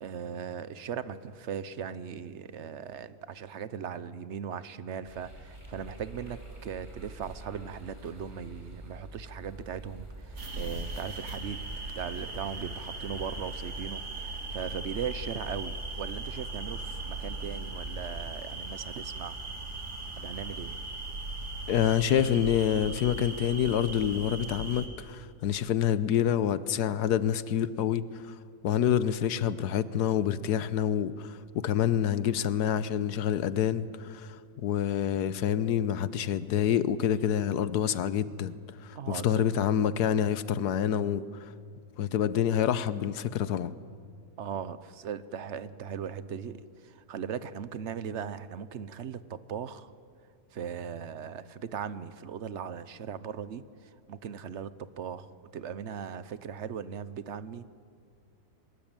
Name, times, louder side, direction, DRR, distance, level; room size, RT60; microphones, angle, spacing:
voice 1, 0.0-10.1 10.6-11.6 11.9-19.4 20.2-20.8 39.0-39.7 44.4-46.6 47.1-49.9 50.5-53.6 54.1-55.3 55.5-57.8, right 7 dB, 55° right, 1.0 m, -38 dB
sound 1, 5.0-10.5, right 2 dB, 20° right, 3.5 m, -46 dB
sound 2, 10.4-24.9, right 2 dB, 85° right, 3.5 m, -38 dB
voice 2, 21.7-28.3 28.6-34.4 34.6-38.5 38.8-41.2 42.0-43.7, left 9 dB, 85° left, 1.4 m, -27 dB
23.0 x 20.5 x 8.9 m
omnidirectional pair, 1.7 m